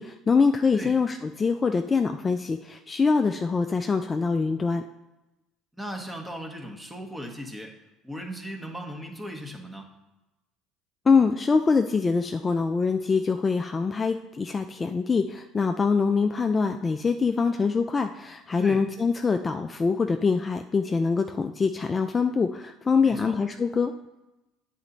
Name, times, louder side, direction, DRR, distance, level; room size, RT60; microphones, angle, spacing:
voice 1, 0.0-4.8 11.1-23.9, left 5 dB, 25° left, 6 dB, 0.4 m, -24 dB
voice 2, 5.7-7.8 8.0-9.9 18.6-18.9 23.0-23.4, equal, 5° right, 3 dB, 1.3 m, -37 dB
8.7 x 4.1 x 4.0 m, 1.0 s
supercardioid pair, 85°, 0 cm